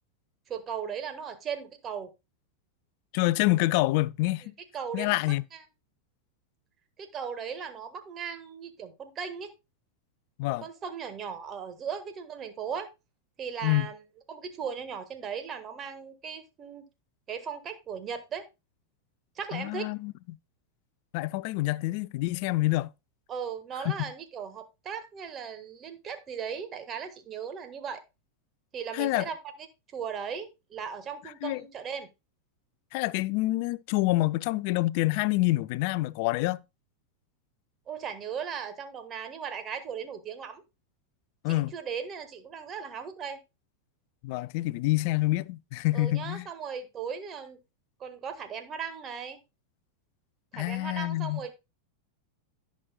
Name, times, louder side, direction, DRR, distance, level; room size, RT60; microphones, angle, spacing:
voice 1, 0.5-2.1 4.7-5.2 5.5-5.6 7.0-9.5 10.6-12.9 13.4-14.0 14.3-16.8 17.3-18.5 19.3-19.9 23.3-28.0 28.7-29.4 29.9-32.1 37.9-40.6 41.5-43.4 45.9-47.6 48.0-49.4 50.5-51.5, right 7 dB, 25° right, 1.6 m, -37 dB
voice 2, 3.1-4.5 4.9-5.4 10.4-10.6 13.6-13.9 19.5-20.1 21.1-22.9 23.8-24.1 28.9-29.3 31.4-31.6 32.9-36.6 41.4-41.7 44.2-46.5 50.5-51.4, left 19 dB, 45° left, 0.4 m, -27 dB
17.0 x 6.2 x 2.3 m
figure-of-eight pair, 90°, 0 cm